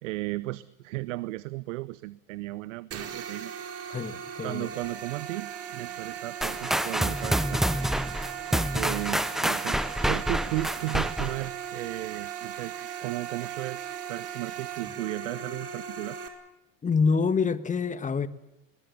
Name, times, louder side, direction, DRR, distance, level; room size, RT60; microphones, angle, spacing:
voice 1, 0.0-3.5 4.4-7.6 8.5-9.8 10.1-12.7 13.0-13.8 14.1-16.2, right 20 dB, 70° right, 0.9 m, -35 dB
sound 1, 2.9-16.3, right 9 dB, 35° right, 4.4 m, -38 dB
voice 2, 3.9-4.7 16.8-18.3, left 5 dB, 20° left, 1.5 m, -26 dB
sound 2, 6.4-11.5, equal, ahead, 0.9 m, -28 dB
21.0 x 21.0 x 8.3 m
hypercardioid pair, 90°, 39 cm